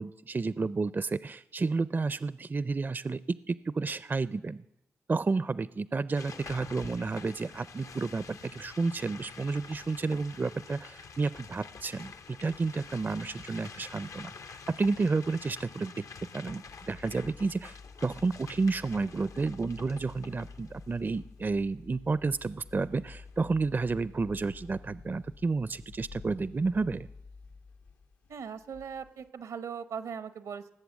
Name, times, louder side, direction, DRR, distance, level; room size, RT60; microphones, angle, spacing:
voice 1, 0.0-3.2 3.5-4.6 5.1-12.1 12.4-16.0 16.3-17.7 18.0-27.1, right 4 dB, 35° right, 17 dB, 0.4 m, -31 dB
sound 1, 6.1-21.2 21.9-22.0 22.2-23.6, left 5 dB, 65° left, 0.6 m, -48 dB
sound 2, 16.7-29.3, left 4 dB, 90° left, 1.2 m, -50 dB
voice 2, 28.3-30.7, right 7 dB, 80° right, 12 dB, 0.9 m, -39 dB
18.0 x 7.9 x 7.1 m, 0.89 s
supercardioid pair, 45°, 6 cm